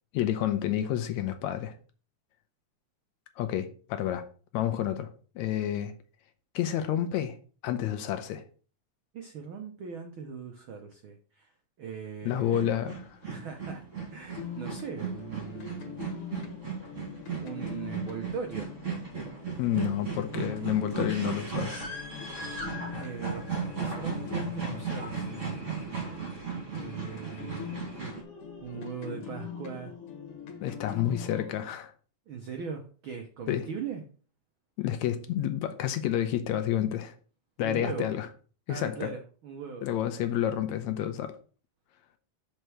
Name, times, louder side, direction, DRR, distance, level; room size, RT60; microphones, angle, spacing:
voice 1, 0.1-1.8 3.4-4.3 4.5-5.9 6.6-7.4 7.6-8.4 12.3-13.2 19.6-21.8 30.6-31.9 33.5-33.7 34.8-37.1 37.6-38.3 38.7-39.1 39.8-41.3, left 11 dB, 75° left, 1.9 m, -29 dB
voice 2, 9.1-11.5 11.8-12.7 13.3-13.8 14.1-16.0 17.4-18.7 23.0-23.5 23.7-25.4 26.7-27.7 28.6-29.9 32.3-34.0 37.6-38.1 38.7-39.9, right 6 dB, 80° right, 1.1 m, -39 dB
sound 1, 12.4-28.2, right 5 dB, 30° right, 1.9 m, -36 dB
sound 2, 14.3-26.4 26.7-31.5, left 7 dB, 50° left, 2.1 m, -43 dB
6.6 x 4.6 x 6.1 m
omnidirectional pair, 3.6 m